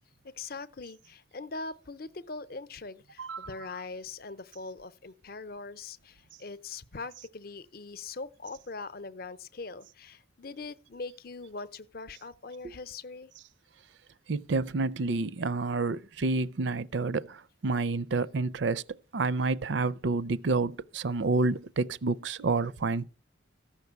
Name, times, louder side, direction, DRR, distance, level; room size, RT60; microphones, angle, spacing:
voice 1, 0.2-13.3, left 3 dB, 50° left, 0.7 m, -42 dB
voice 2, 14.3-18.8 19.1-23.0, right 3 dB, 70° right, 0.5 m, -29 dB
14.0 x 6.0 x 8.1 m
head